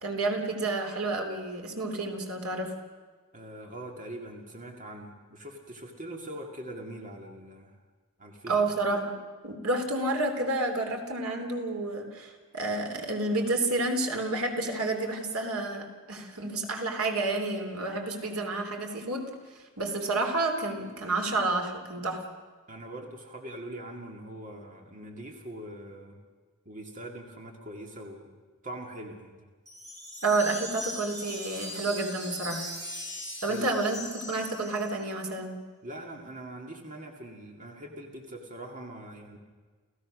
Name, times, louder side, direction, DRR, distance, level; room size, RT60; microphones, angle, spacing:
voice 1, 0.0-2.7 8.5-9.1 9.4-19.2 19.8-22.2 30.2-32.6 33.4-35.6, right 2 dB, 75° right, 3 dB, 3.2 m, -30 dB
voice 2, 3.3-7.8 8.2-8.6 22.7-26.2 26.7-28.3 28.6-29.5 33.5-33.7 35.8-39.4, right 1 dB, 35° right, 2 dB, 2.1 m, -42 dB
Wind chime, 29.6-35.0, equal, 15° right, 5.1 m, -40 dB
29.5 x 16.0 x 6.3 m, 1.4 s
head